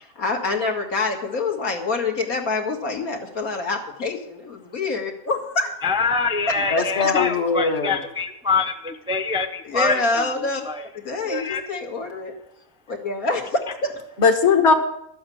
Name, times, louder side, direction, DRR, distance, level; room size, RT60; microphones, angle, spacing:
voice 1, 0.2-5.7 6.8-6.9 9.6-10.6 10.9-12.3 12.9-14.0, left 3 dB, 80° left, 2 dB, 2.4 m, -26 dB
voice 2, 5.8-10.8 11.1-11.6, left 4 dB, 5° right, 6 dB, 0.5 m, -25 dB
voice 3, 6.7-8.0 14.2-14.7, left 5 dB, 50° left, 5 dB, 1.6 m, -19 dB
12.0 x 7.8 x 8.6 m, 0.78 s
omnidirectional pair, 1.5 m